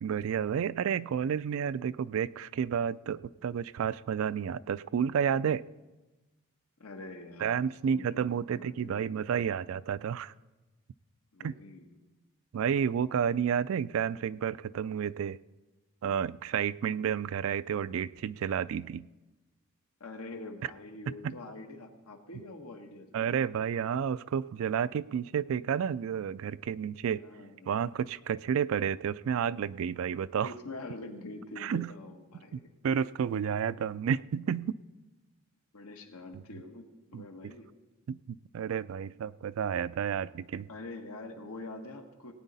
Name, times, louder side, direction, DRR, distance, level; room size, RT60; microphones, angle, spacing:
voice 1, 0.0-5.6 7.4-10.3 11.4-11.5 12.5-15.4 16.0-19.1 21.1-21.4 23.1-27.2 27.7-30.5 31.6-31.9 32.5-34.8 36.3-36.4 37.1-37.5 38.1-40.7, right 7 dB, 70° right, 19 dB, 0.3 m, -31 dB
voice 2, 6.8-9.1 11.3-12.0 20.0-23.3 27.1-27.7 30.4-32.6 35.7-37.7 40.7-42.3, left 2 dB, 85° left, 4 dB, 1.4 m, -45 dB
18.0 x 9.0 x 4.1 m, 1.1 s
head